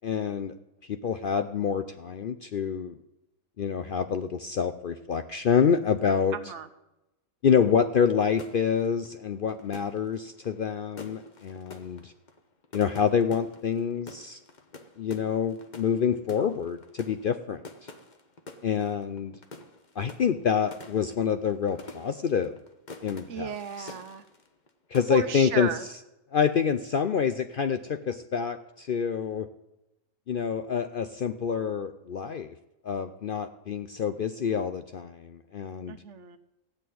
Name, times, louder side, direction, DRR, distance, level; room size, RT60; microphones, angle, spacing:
voice 1, 0.0-0.5 0.9-3.0 3.6-6.4 7.4-12.1 12.7-14.4 15.0-17.6 18.6-19.3 20.0-22.6 23.0-23.5 23.8-23.9 24.9-25.7 26.3-29.5 30.3-32.5 32.8-36.0, left 7 dB, 60° left, 9 dB, 0.5 m, -27 dB
voice 2, 6.3-6.7 23.3-24.2 25.1-25.9 35.9-36.4, right 7 dB, 60° right, 11 dB, 1.1 m, -34 dB
sound 1, 8.3-24.7 24.9-25.5, left 3 dB, 35° left, 1.1 m, -48 dB
15.0 x 6.5 x 9.3 m, 0.92 s
omnidirectional pair, 1.5 m